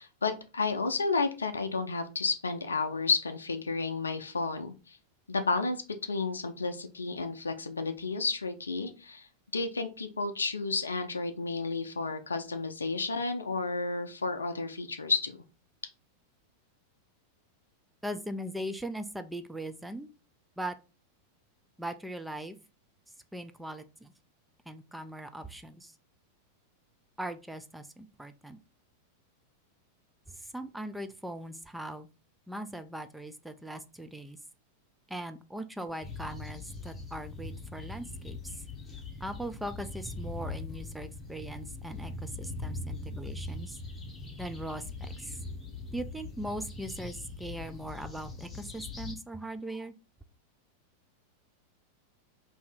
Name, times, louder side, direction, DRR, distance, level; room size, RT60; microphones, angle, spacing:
voice 1, 0.0-5.0 5.3-15.4, left 4 dB, 75° left, 8 dB, 0.5 m, -32 dB
voice 2, 18.0-20.1 20.6-20.8 21.8-22.6 23.3-24.1 24.7-25.9 27.2-28.6 30.3-32.1 32.5-34.4 35.1-38.6 39.2-43.8 44.4-45.4 45.9-49.9, right 1 dB, 5° right, 9 dB, 0.3 m, -40 dB
sound 1, 36.0-49.1, left 3 dB, 15° left, 0.8 m, -41 dB
2.7 x 2.6 x 3.6 m, 0.32 s
figure-of-eight pair, 90°, 0 cm